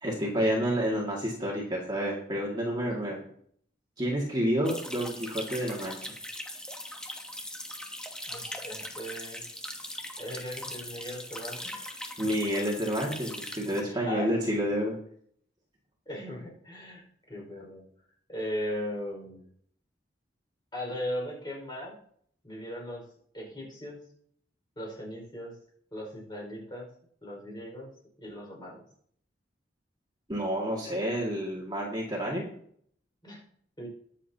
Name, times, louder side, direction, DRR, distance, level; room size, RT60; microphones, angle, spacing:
voice 1, 0.0-3.2 4.0-6.0 12.2-15.0 30.3-32.4, equal, 25° right, -3 dB, 2.2 m, -29 dB
sound 1, 4.6-13.8, left 1 dB, 5° left, 1.1 m, -40 dB
voice 2, 8.3-9.4 10.2-12.0 13.8-14.4 16.1-17.8 18.3-19.4 20.7-22.0 22.4-23.1 23.3-24.0 24.8-25.6 25.9-26.9 27.2-27.9 28.2-28.8 33.2-33.4 33.8-33.9, equal, 25° left, -2 dB, 5.2 m, -38 dB
21.5 x 7.4 x 2.9 m, 0.64 s
head